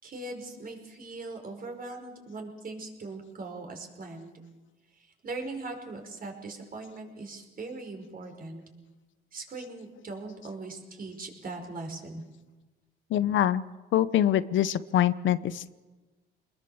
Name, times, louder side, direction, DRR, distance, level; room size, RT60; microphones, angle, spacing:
voice 1, 0.0-4.3 4.9-8.6 9.3-12.2, right 3 dB, 45° right, 3 dB, 5.3 m, -40 dB
voice 2, 13.1-13.6 13.9-15.7, left 11 dB, 75° left, 15 dB, 0.9 m, -24 dB
25.0 x 20.5 x 7.2 m, 1.2 s
cardioid pair, 90°, 20 cm